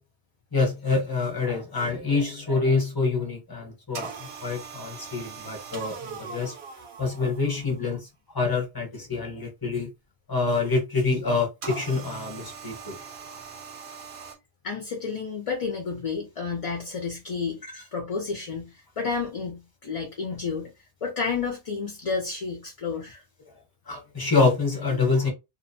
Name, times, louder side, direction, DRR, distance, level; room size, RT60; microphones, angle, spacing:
voice 1, 0.5-6.5 7.0-8.1 8.3-9.9 10.3-13.0 23.9-25.3, left 4 dB, 25° left, 0.9 m, -26 dB
sound 1, 3.9-7.9 11.6-14.4, right 5 dB, 85° right, 1.0 m, -40 dB
voice 2, 14.6-17.6 17.9-20.7 21.0-23.2, left 5 dB, 45° left, 0.5 m, -31 dB
2.7 x 2.1 x 2.6 m
omnidirectional pair, 1.0 m